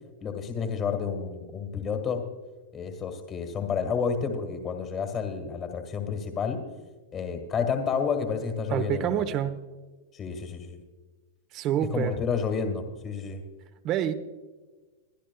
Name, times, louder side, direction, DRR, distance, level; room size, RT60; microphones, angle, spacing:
voice 1, 0.2-2.2 2.7-6.6 7.1-9.2 10.1-10.8 11.9-13.4, left 6 dB, 25° left, 5 dB, 1.6 m, -30 dB
voice 2, 8.7-9.6 11.5-12.2 13.8-14.1, right 10 dB, 40° right, 11 dB, 0.9 m, -27 dB
24.0 x 10.0 x 2.3 m, 1.3 s
hypercardioid pair, 135°, 0 cm